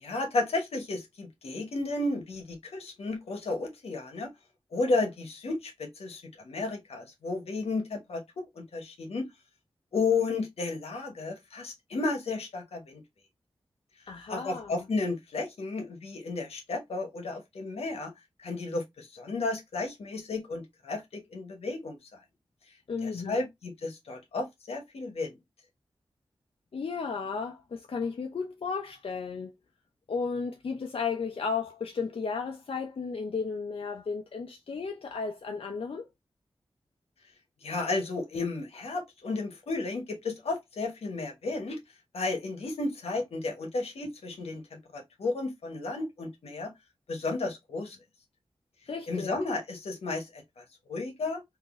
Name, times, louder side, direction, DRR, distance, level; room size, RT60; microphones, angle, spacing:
voice 1, 0.0-4.3 4.7-9.3 9.9-13.0 14.3-18.1 18.4-22.2 23.0-25.3 37.6-41.8 42.1-46.7 47.1-48.0 49.1-51.4, left 3 dB, 90° left, 1.0 m, -33 dB
voice 2, 14.1-14.8 22.9-23.5 26.7-29.5 30.1-36.1 48.9-49.3, left 5 dB, 65° left, 0.6 m, -34 dB
3.6 x 2.6 x 2.5 m
cardioid pair, 45°, 10 cm